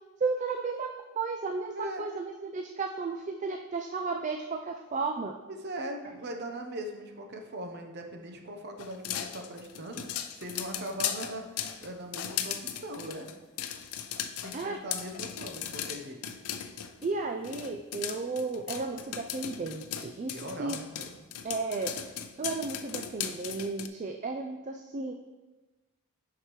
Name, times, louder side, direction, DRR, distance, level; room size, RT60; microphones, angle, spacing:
voice 1, 0.2-5.4 14.5-14.8 17.0-20.8 21.4-21.9 22.4-25.1, right 4 dB, 35° right, 5 dB, 0.3 m, -34 dB
voice 2, 1.7-2.1 5.5-13.3 14.4-16.2 20.3-21.2, right 1 dB, 50° right, 4 dB, 0.9 m, -40 dB
sound 1, 8.8-17.1 17.4-23.9, left 9 dB, 85° left, 0.5 m, -37 dB
9.6 x 5.8 x 3.2 m, 1.2 s
head